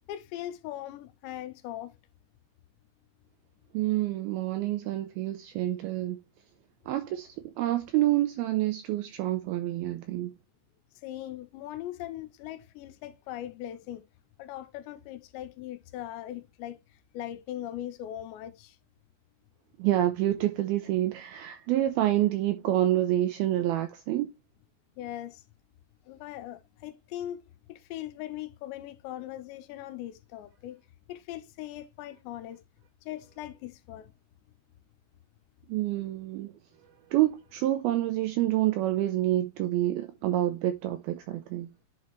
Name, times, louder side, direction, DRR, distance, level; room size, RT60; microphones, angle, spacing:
voice 1, 0.1-2.0 11.0-14.0 14.4-16.8 17.1-18.8 25.0-25.4 26.1-27.4 27.7-30.8 31.1-32.6 33.0-34.1, left 13 dB, 85° left, 3.0 m, -40 dB
voice 2, 3.7-6.2 6.9-10.3 19.8-24.3 35.7-36.5 37.1-41.7, right 14 dB, 90° right, 2.2 m, -27 dB
10.5 x 4.3 x 3.1 m
omnidirectional pair, 5.0 m